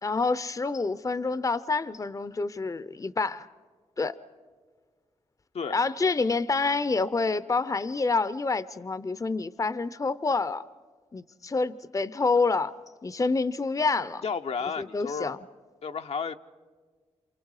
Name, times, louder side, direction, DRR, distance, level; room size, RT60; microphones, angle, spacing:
voice 1, 0.0-3.5 4.0-4.2 5.7-10.7 11.1-12.7 13.0-14.2 14.8-15.4, left 3 dB, 30° left, 0.6 m, -27 dB
voice 2, 14.2-15.3 15.8-16.4, left 5 dB, 65° left, 0.7 m, -32 dB
28.0 x 27.5 x 4.8 m
cardioid pair, 55°, 12 cm